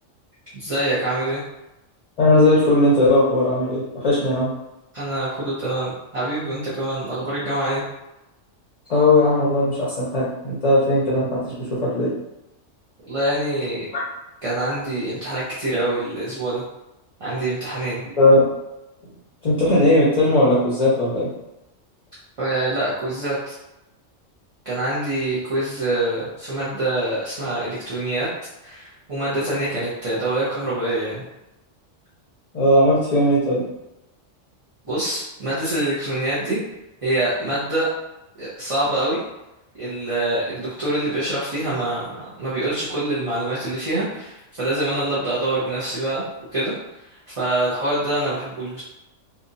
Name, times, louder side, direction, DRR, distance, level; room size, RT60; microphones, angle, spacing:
voice 1, 0.5-1.4 4.9-7.8 13.1-13.9 14.4-16.6 17.2-18.0 22.4-23.5 24.6-28.3 28.6-31.2 34.8-36.6 37.0-37.9 38.3-39.2 39.8-46.2 46.5-46.7 47.4-48.8, right 1 dB, 35° right, -10 dB, 0.6 m, -25 dB
voice 2, 2.2-4.5 8.9-12.1 18.2-18.4 19.4-21.3 32.5-33.6, left 1 dB, 40° left, -8 dB, 0.7 m, -18 dB
2.8 x 2.4 x 2.6 m, 0.93 s
omnidirectional pair, 1.3 m